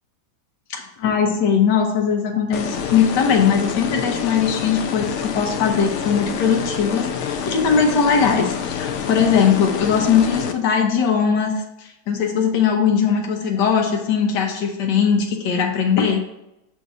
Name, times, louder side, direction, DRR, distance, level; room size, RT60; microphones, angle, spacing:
voice 1, 0.7-16.2, left 6 dB, 90° left, 1 dB, 1.5 m, -20 dB
sound 1, 2.5-10.5, left 7 dB, 70° left, 0.7 m, -27 dB
7.4 x 2.7 x 5.9 m, 0.90 s
omnidirectional pair, 1.8 m